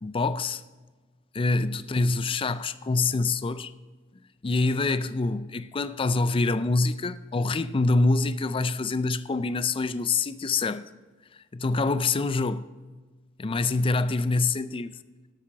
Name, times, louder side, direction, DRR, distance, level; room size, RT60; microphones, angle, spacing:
voice 1, 0.0-0.6 1.3-3.7 4.4-10.9 11.5-12.6 13.4-14.9, left 3 dB, 25° left, 0.4 m, -25 dB
12.0 x 8.4 x 4.7 m
head